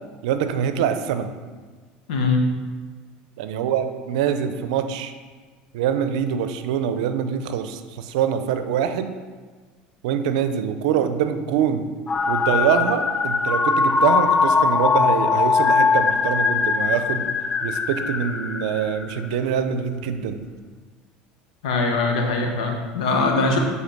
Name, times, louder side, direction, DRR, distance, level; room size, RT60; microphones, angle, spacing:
voice 1, 0.2-1.3 3.4-5.1 5.7-9.2 10.0-11.9 12.3-17.3 17.6-20.4, right 8 dB, 80° right, 9 dB, 0.6 m, -24 dB
voice 2, 2.1-2.4 21.6-23.6, left 3 dB, 90° left, 2 dB, 1.2 m, -21 dB
sound 1, 12.1-19.3, left 5 dB, 25° left, 0.4 m, -21 dB
7.2 x 4.1 x 6.0 m, 1.4 s
supercardioid pair, 105°, 4 cm